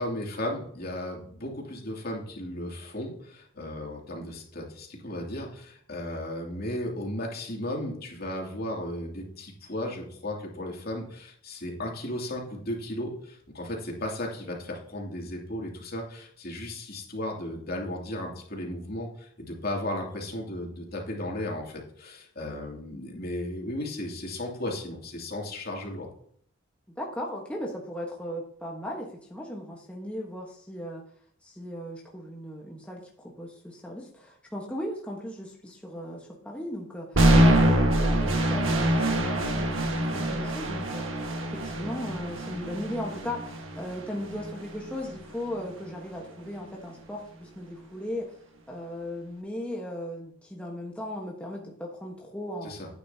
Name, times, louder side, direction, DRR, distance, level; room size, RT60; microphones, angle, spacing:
voice 1, 0.0-26.1 37.3-37.5 52.6-52.9, left 1 dB, 50° left, -1 dB, 2.7 m, -35 dB
voice 2, 27.0-31.0 31.4-37.1 37.5-41.1 41.5-48.3 48.7-52.7, left 1 dB, 5° left, -2 dB, 1.3 m, -37 dB
sound 1, 37.2-45.2, right 1 dB, 75° right, 1.6 m, -25 dB
10.5 x 9.3 x 2.8 m, 0.62 s
head